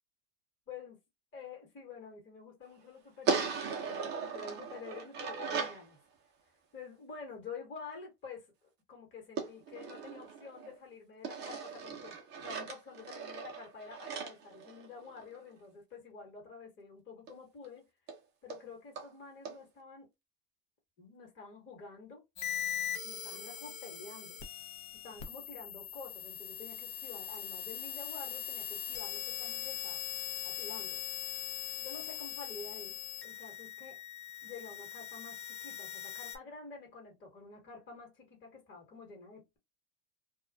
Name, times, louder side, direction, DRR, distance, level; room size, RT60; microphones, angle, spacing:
voice 1, 0.7-1.0 1.3-6.0 6.7-8.5 8.9-17.9 18.4-20.1 21.0-22.2 23.0-24.4 25.0-30.0 30.4-31.0 31.8-33.0 33.2-34.0 34.4-39.6, left 4 dB, 25° left, 1.2 m, -49 dB
sound 1, 3.3-5.8 9.4-10.8 11.2-15.4 17.3-17.4 17.6-17.7 18.1-18.2 18.5-18.6 19.0-19.1 19.4-19.6, right 5 dB, 20° right, 0.5 m, -38 dB
sound 2, 22.4-36.4, left 10 dB, 50° left, 0.7 m, -41 dB
2.3 x 2.3 x 2.2 m
supercardioid pair, 130°, 49 cm